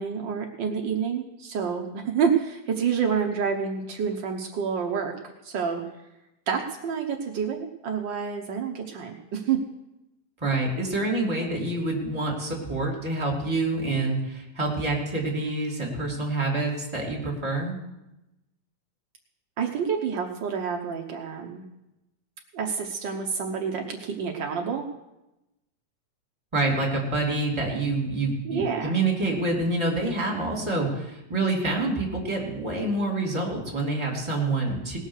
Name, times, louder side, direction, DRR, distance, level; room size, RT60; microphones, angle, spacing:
voice 1, 0.0-5.1 5.4-5.8 6.5-9.6 19.6-21.7 22.5-24.8 28.4-28.9, right 6 dB, 85° right, 2 dB, 1.0 m, -28 dB
voice 2, 10.4-17.8 26.5-35.0, right 2 dB, 10° right, -2 dB, 2.5 m, -27 dB
19.0 x 6.4 x 6.5 m, 0.94 s
omnidirectional pair, 3.4 m